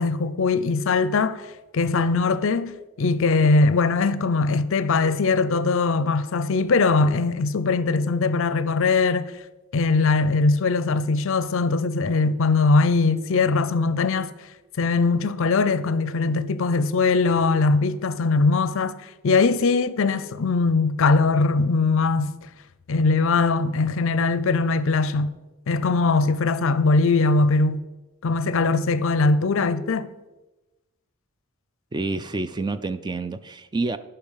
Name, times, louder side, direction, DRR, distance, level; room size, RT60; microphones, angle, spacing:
voice 1, 0.0-1.4 1.7-9.3 9.7-14.3 14.8-19.0 19.2-22.3 22.9-25.4 25.7-27.8 28.2-30.1, left 3 dB, 65° left, 0.5 m, -21 dB
voice 2, 31.9-34.0, right 3 dB, 20° right, 0.3 m, -28 dB
10.5 x 5.6 x 5.7 m
head